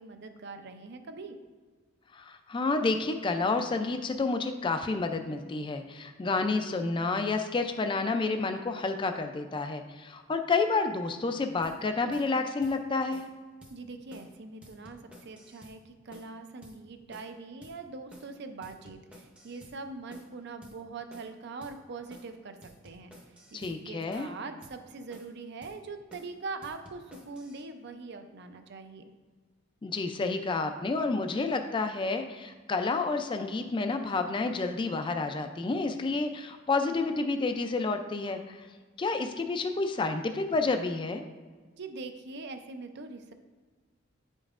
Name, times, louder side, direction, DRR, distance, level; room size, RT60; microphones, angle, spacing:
voice 1, 0.0-1.4 13.7-23.1 23.5-29.0 41.7-43.3, right 3 dB, 55° right, 7 dB, 0.5 m, -42 dB
voice 2, 2.1-13.3 23.5-24.3 29.8-38.7 39.0-41.2, left 3 dB, 25° left, 6 dB, 0.3 m, -30 dB
sound 1, 11.6-11.8 12.1-12.3 12.6-12.8 13.1-13.3 13.6-13.8 14.1-14.3 14.6-15.8 16.1-16.3 16.6-16.8 17.1-17.3 17.6-17.8 18.1-18.3 18.6-19.8 20.1-20.3 20.6-20.8 21.1-21.3 21.6-21.8 22.1-22.3 22.6-23.8 24.1-24.3 24.6-24.8 25.1-25.4 25.6-25.8 26.1-26.3 26.6-27.6, equal, 5° right, 0.7 m, -53 dB
8.6 x 5.2 x 2.4 m, 1.4 s
head